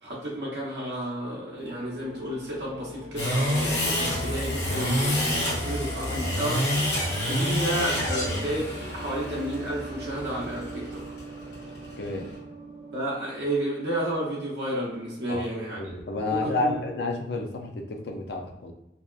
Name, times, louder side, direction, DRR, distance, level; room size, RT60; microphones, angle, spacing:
voice 1, 0.0-6.6 7.2-11.0 12.9-15.9 16.2-16.8, right 1 dB, 70° right, -5 dB, 0.7 m, -31 dB
sound 1, 1.5-14.4, right 1 dB, 35° right, 0.6 m, -40 dB
sound 2, 3.2-12.4, left 1 dB, 85° left, 1.3 m, -28 dB
voice 2, 12.0-12.3 15.3-15.4 15.7-18.7, left 2 dB, 70° left, 2 dB, 0.4 m, -30 dB
2.8 x 2.2 x 2.3 m, 0.92 s
head